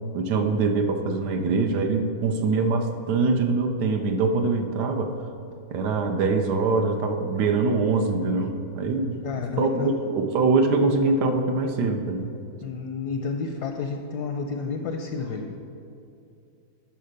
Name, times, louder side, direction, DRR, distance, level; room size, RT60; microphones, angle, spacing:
voice 1, 0.1-5.1 5.7-9.2 9.6-12.3, right 3 dB, 65° right, 5 dB, 1.1 m, -23 dB
voice 2, 9.2-9.9 12.6-15.5, left 5 dB, 70° left, 4 dB, 1.0 m, -30 dB
10.0 x 4.9 x 6.5 m, 2.6 s
omnidirectional pair, 2.2 m